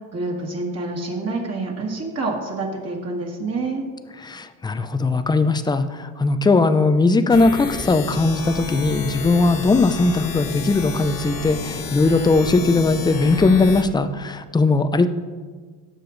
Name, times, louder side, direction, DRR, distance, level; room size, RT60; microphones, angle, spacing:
voice 1, 0.1-3.8, right 3 dB, 35° right, -1 dB, 2.1 m, -27 dB
voice 2, 4.2-15.1, left 3 dB, 10° left, 11 dB, 0.5 m, -19 dB
sound 1, 7.3-13.8, left 4 dB, 45° left, 1.3 m, -31 dB
16.5 x 6.7 x 3.9 m, 1.5 s
cardioid pair, 110°, 45 cm